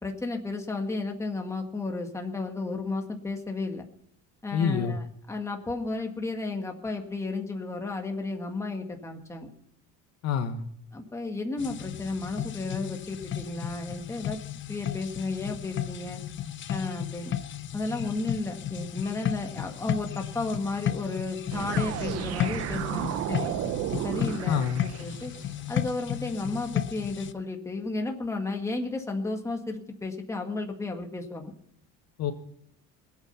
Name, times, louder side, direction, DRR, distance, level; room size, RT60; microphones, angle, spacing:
voice 1, 0.0-3.9 4.4-9.5 10.9-14.4 14.7-16.2 16.7-17.3 17.7-23.6 24.0-25.3 25.7-31.5, left 3 dB, 10° left, 1.8 m, -33 dB
voice 2, 4.5-5.0 10.2-10.6 24.4-24.8 32.2-32.3, left 7 dB, 55° left, 1.5 m, -26 dB
sound 1, 11.6-27.3, left 10 dB, 35° left, 0.7 m, -34 dB
sound 2, 21.5-25.5, right 12 dB, 50° right, 0.7 m, -33 dB
21.0 x 8.8 x 5.7 m
cardioid pair, 155°, 32 cm